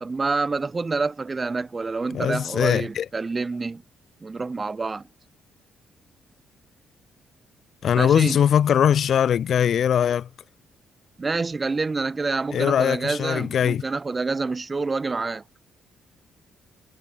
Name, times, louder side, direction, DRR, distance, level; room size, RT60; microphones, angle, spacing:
voice 1, 0.0-3.8 4.2-5.0 8.0-8.4 11.2-15.4, right 3 dB, 25° right, 0.9 m, -27 dB
voice 2, 2.1-3.0 7.8-10.3 12.5-13.8, left 9 dB, 60° left, 1.3 m, -21 dB
cardioid pair, 90°, 0 cm